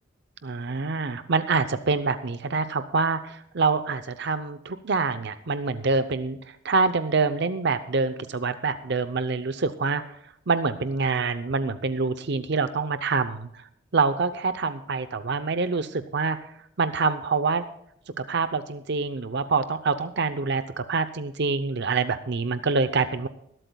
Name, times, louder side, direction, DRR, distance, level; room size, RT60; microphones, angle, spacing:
voice 1, 0.4-6.4 6.6-10.0 10.5-13.6 13.9-16.5 16.8-17.6 18.3-23.3, right 4 dB, 65° right, 11 dB, 0.7 m, -26 dB
21.0 x 12.5 x 2.3 m, 0.74 s
head